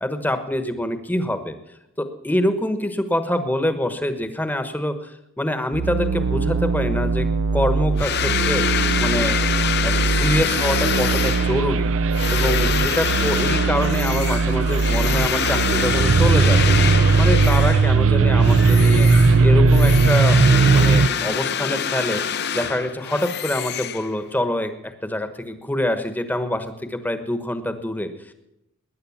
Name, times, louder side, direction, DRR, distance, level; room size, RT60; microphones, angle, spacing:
voice 1, 0.0-1.6 2.0-7.3 7.5-8.6 9.0-11.9 12.3-16.7 17.2-19.1 19.4-20.4 20.7-28.1, left 1 dB, 10° left, 9 dB, 1.2 m, -25 dB
sound 1, 5.7-21.1, right 4 dB, 60° right, 0.5 m, -18 dB
sound 2, 8.0-18.0 18.4-24.4, left 7 dB, 50° left, 0.7 m, -25 dB
19.5 x 10.5 x 7.2 m, 0.89 s
head